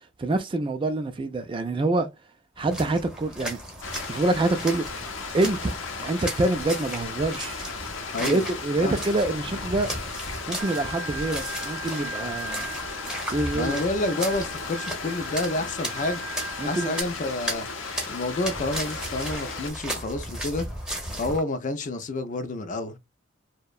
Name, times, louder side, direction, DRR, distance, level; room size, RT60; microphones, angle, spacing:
voice 1, 0.0-2.1 2.6-3.6 4.1-4.9 5.3-7.6 8.2-9.9 10.5-12.8 13.3-13.8 16.6-16.9, right 2 dB, 25° right, 0.4 m, -26 dB
sound 1, 2.6-21.4, right 1 dB, 5° right, 0.7 m, -36 dB
Stream, 3.8-19.7, left 4 dB, 80° left, 0.6 m, -36 dB
Organ, 10.6-17.0, right 2 dB, 65° right, 0.7 m, -38 dB
voice 2, 13.5-16.2 16.6-17.7 18.1-20.7 21.2-23.0, left 2 dB, 40° left, 0.4 m, -29 dB
2.7 x 2.1 x 2.3 m
head